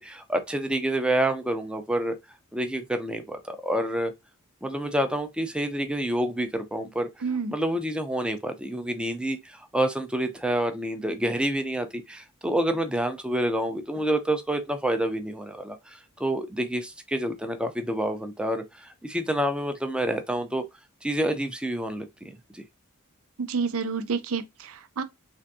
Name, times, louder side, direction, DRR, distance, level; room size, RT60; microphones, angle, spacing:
voice 1, 0.0-2.2 2.5-4.1 4.6-7.1 7.5-20.6 21.0-22.6, right 1 dB, 5° right, 0.5 m, -28 dB
voice 2, 7.2-7.5 23.4-25.0, right 5 dB, 65° right, 0.5 m, -29 dB
3.4 x 2.5 x 2.6 m
head